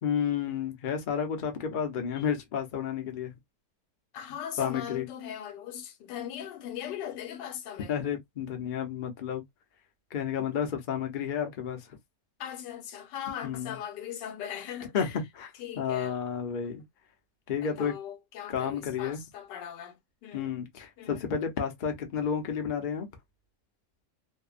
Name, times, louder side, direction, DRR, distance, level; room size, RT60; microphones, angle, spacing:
voice 1, 0.0-3.3 4.6-5.1 7.9-9.4 10.1-12.0 13.4-13.8 14.9-15.5 15.8-16.8 17.5-17.9 18.5-19.2 20.3-23.1, left 7 dB, 55° left, 0.5 m, -31 dB
voice 2, 4.1-7.9 12.4-15.2 15.6-16.2 17.6-20.5 21.0-21.4, left 10 dB, 85° left, 1.3 m, -39 dB
2.7 x 2.1 x 2.4 m
omnidirectional pair, 1.8 m